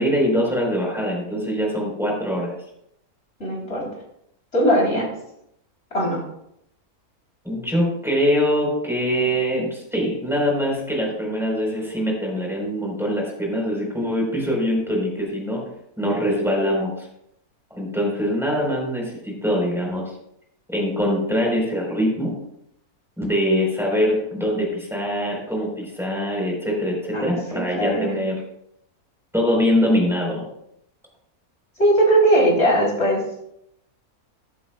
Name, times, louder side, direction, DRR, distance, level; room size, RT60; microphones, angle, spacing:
voice 1, 0.0-2.5 7.4-15.6 16.0-17.1 17.7-20.0 20.7-22.4 23.2-28.4 29.3-30.4, equal, ahead, -2 dB, 4.1 m, -23 dB
voice 2, 3.4-3.9 4.5-5.1 5.9-6.2 27.1-28.1 31.8-33.2, right 1 dB, 45° left, -3 dB, 3.8 m, -19 dB
14.5 x 11.0 x 2.3 m, 0.76 s
omnidirectional pair, 1.6 m